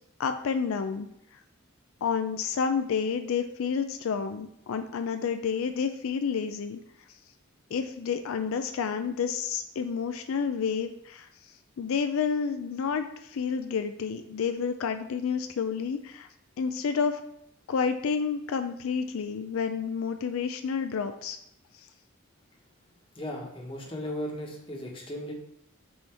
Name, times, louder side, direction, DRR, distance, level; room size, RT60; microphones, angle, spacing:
voice 1, 0.2-1.1 2.0-6.8 7.7-11.3 11.8-16.3 16.6-17.2 17.7-21.4, left 6 dB, 75° left, 8 dB, 0.4 m, -29 dB
voice 2, 23.1-25.3, left 1 dB, 25° left, -1 dB, 1.2 m, -36 dB
5.6 x 4.2 x 4.4 m, 0.76 s
head